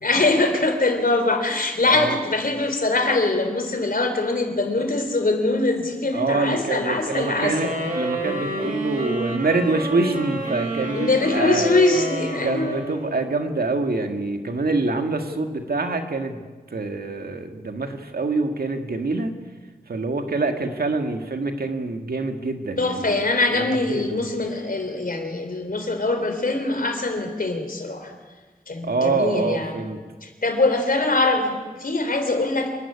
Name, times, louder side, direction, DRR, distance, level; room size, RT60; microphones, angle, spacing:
voice 1, 0.0-7.7 10.9-12.8 22.8-28.1 28.7-29.8 30.2-32.7, left 2 dB, 65° left, 5 dB, 3.5 m, -23 dB
voice 2, 6.1-7.7 7.9-11.7 12.4-16.4 16.7-19.3 19.9-23.2 23.6-23.7 23.9-24.2 28.8-30.0, right 3 dB, 90° right, 6 dB, 1.9 m, -25 dB
sound 1, 7.1-13.5, right 2 dB, 60° right, 7.2 m, -29 dB
26.5 x 11.5 x 9.8 m, 1.4 s
wide cardioid pair, 50°, 15 cm